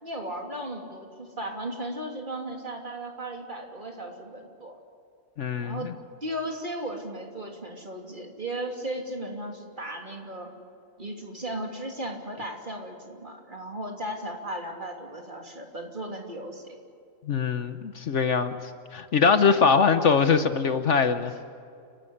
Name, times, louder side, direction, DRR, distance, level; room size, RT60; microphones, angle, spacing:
voice 1, 0.0-4.8 5.6-5.9 6.2-10.5 11.0-16.8, right 1 dB, 35° right, 2 dB, 3.1 m, -36 dB
voice 2, 5.4-5.9 17.3-18.6 18.9-21.3, left 5 dB, 60° left, 10 dB, 1.2 m, -22 dB
29.0 x 12.5 x 10.0 m, 2.5 s
omnidirectional pair, 1.5 m